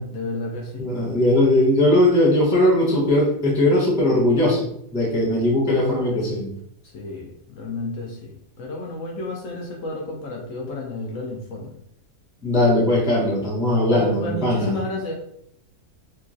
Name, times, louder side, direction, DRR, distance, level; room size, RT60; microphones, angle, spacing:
voice 1, 0.0-0.9 6.8-11.8 13.9-15.1, left 2 dB, 70° left, -1 dB, 0.8 m, -31 dB
voice 2, 0.8-6.6 12.4-14.8, left 1 dB, 5° right, -5 dB, 0.3 m, -19 dB
2.9 x 2.5 x 2.5 m, 0.72 s
omnidirectional pair, 1.6 m